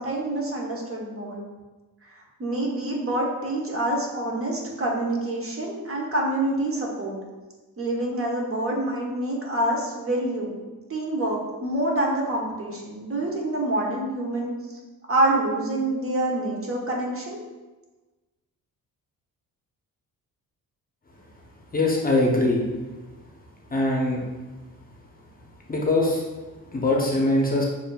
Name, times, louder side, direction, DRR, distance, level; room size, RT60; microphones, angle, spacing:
voice 1, 0.0-1.4 2.4-7.2 7.8-10.6 10.9-14.5 15.1-17.4, right 1 dB, 40° right, -2 dB, 1.0 m, -26 dB
voice 2, 21.7-22.6 23.7-24.2 25.7-26.2 26.7-27.6, left 2 dB, 25° left, -2 dB, 0.7 m, -22 dB
6.6 x 2.6 x 2.3 m, 1.2 s
cardioid pair, 95°, 36 cm